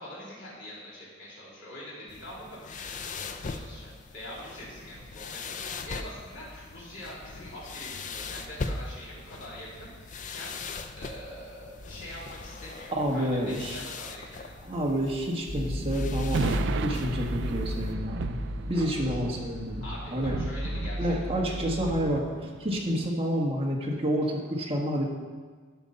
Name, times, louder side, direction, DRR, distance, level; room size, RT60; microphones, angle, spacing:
voice 1, 0.0-10.6 10.9-13.3 13.6-14.5 18.7-19.2 19.8-21.3, left 1 dB, 60° left, -7 dB, 3.2 m, -44 dB
sound 1, 2.1-17.9, left 4 dB, 35° left, 0.5 m, -41 dB
voice 2, 13.0-13.8 14.6-18.4 18.7-19.8 20.1-20.4 21.0-25.1, equal, 25° right, -2 dB, 1.5 m, -29 dB
sound 2, 15.5-22.0, equal, 15° left, 2.8 m, -34 dB
sound 3, 16.3-23.1, right 5 dB, 55° right, 0.4 m, -36 dB
12.0 x 5.5 x 5.4 m, 1.5 s
head